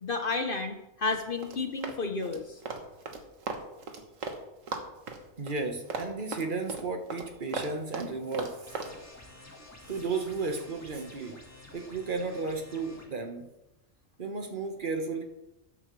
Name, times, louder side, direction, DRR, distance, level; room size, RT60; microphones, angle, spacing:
voice 1, 0.0-2.6, left 3 dB, 50° left, 6 dB, 0.9 m, -32 dB
Run, 1.1-4.4 4.7-8.9, right 4 dB, 85° right, 1.6 m, -37 dB
voice 2, 5.4-8.8 9.9-11.4 11.7-13.5 14.2-15.2, right 3 dB, 40° right, 4 dB, 1.3 m, -34 dB
sound 1, 8.7-13.1, left 1 dB, 10° left, 1.7 m, -50 dB
13.5 x 10.5 x 3.2 m, 0.93 s
omnidirectional pair, 1.3 m